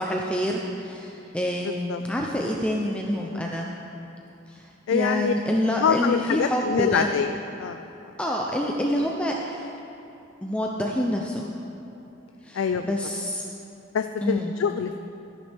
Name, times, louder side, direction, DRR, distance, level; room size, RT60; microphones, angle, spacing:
voice 1, 0.0-3.7 4.5-7.1 8.2-9.7 10.4-11.5 12.4-13.5 14.2-14.6, equal, 5° left, -1 dB, 0.5 m, -27 dB
voice 2, 1.6-2.0 3.3-3.5 4.9-5.3 5.8-7.3 7.6-7.8 12.5-12.9 13.9-15.0, left 7 dB, 90° left, 7 dB, 0.3 m, -25 dB
13.5 x 10.5 x 3.5 m, 2.8 s
head